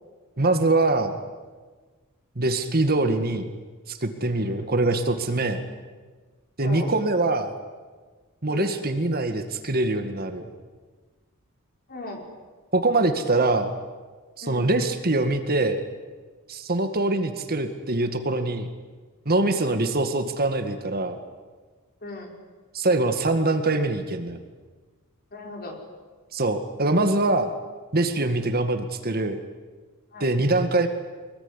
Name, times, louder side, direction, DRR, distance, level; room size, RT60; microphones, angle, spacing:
voice 1, 0.4-1.2 2.4-3.5 3.9-5.6 6.6-7.5 8.4-10.4 12.7-13.8 14.4-15.8 16.5-18.7 19.3-21.2 22.7-24.4 26.3-27.5 27.9-29.4 30.2-30.9, right 2 dB, 45° right, 7 dB, 2.0 m, -23 dB
voice 2, 6.6-6.9 8.5-8.9 11.9-12.3 14.4-14.7 22.0-22.3 25.3-25.8 30.1-30.3, left 2 dB, 45° left, 2 dB, 5.5 m, -37 dB
24.5 x 21.5 x 10.0 m, 1.4 s
head